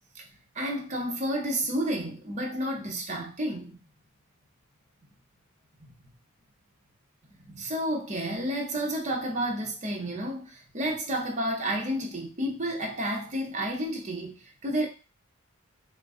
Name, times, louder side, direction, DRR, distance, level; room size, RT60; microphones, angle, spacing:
voice 1, 0.5-3.8 5.8-5.9 7.3-14.9, right 1 dB, 35° right, 1 dB, 0.7 m, -31 dB
2.4 x 2.2 x 3.5 m, 0.31 s
head